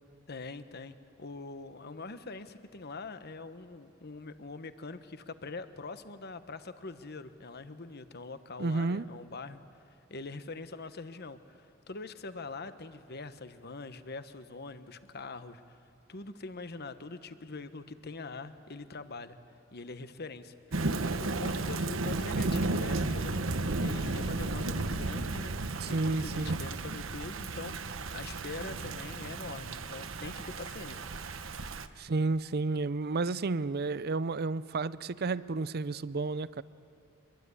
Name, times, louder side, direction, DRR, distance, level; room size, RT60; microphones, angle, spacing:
voice 1, 0.3-9.6 10.1-15.8 16.1-19.4 19.7-31.1, left 3 dB, 50° left, 1.2 m, -43 dB
voice 2, 8.6-9.1 25.8-26.6 32.0-36.6, right 3 dB, 50° right, 0.6 m, -31 dB
Thunder / Rain, 20.7-31.9, right 2 dB, 70° right, 1.2 m, -33 dB
24.5 x 22.5 x 9.8 m
head